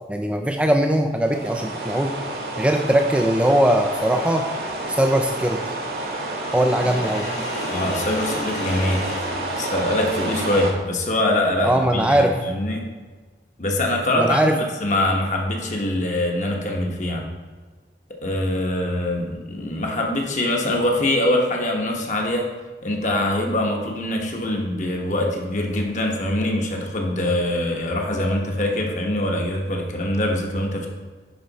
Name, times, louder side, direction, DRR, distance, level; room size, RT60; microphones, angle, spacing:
voice 1, 0.0-2.2 2.6-4.5 4.9-5.6 6.5-7.3 11.6-12.3 14.2-14.6, right 1 dB, 5° right, 3 dB, 0.3 m, -20 dB
sound 1, 1.2-10.7, right 2 dB, 55° right, 1.3 m, -29 dB
Sink (filling or washing), 6.3-10.3, left 2 dB, 65° left, 2.2 m, -35 dB
voice 2, 7.7-9.1 9.6-12.8 13.6-17.3 18.2-22.5 22.8-30.9, left 1 dB, 45° left, 1 dB, 1.1 m, -23 dB
10.5 x 4.5 x 4.0 m, 1.4 s
head